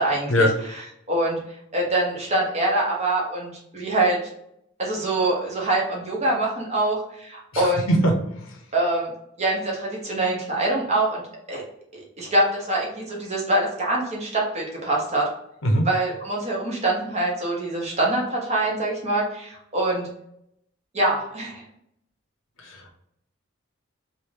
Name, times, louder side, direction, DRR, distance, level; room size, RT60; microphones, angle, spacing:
voice 1, 0.0-1.4 1.7-4.3 4.8-7.9 8.7-9.1 9.4-11.2 11.5-11.6 12.2-15.3 15.8-20.1 20.9-21.6, right 2 dB, 35° right, -3 dB, 1.0 m, -24 dB
voice 2, 7.5-8.1 15.6-15.9 22.6-22.9, equal, 80° left, 2 dB, 0.8 m, -21 dB
3.1 x 2.6 x 3.3 m, 0.74 s
head